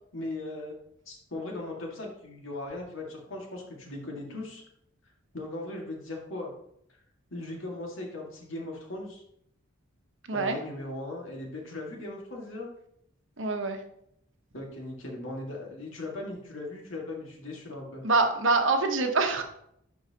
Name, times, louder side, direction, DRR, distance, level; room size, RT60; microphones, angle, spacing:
voice 1, 0.1-0.8 1.1-4.6 5.3-6.5 7.3-9.2 10.3-12.7 14.5-18.0, left 2 dB, 75° left, -1 dB, 1.9 m, -38 dB
voice 2, 13.4-13.8 18.0-19.4, right 3 dB, 70° right, 5 dB, 1.0 m, -25 dB
11.0 x 4.7 x 2.9 m, 0.73 s
head